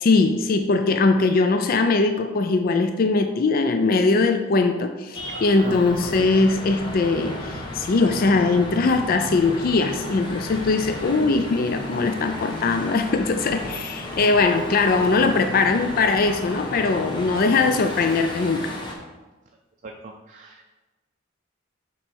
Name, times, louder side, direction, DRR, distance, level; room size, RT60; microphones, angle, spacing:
voice 1, 0.0-18.7, left 3 dB, 50° left, 7 dB, 0.4 m, -21 dB
sound 1, 5.1-18.9, left 1 dB, 25° left, 1.0 m, -34 dB
voice 2, 5.2-5.9 19.8-20.7, right 3 dB, 40° right, 2 dB, 0.5 m, -38 dB
7.1 x 3.3 x 5.3 m, 1.2 s
head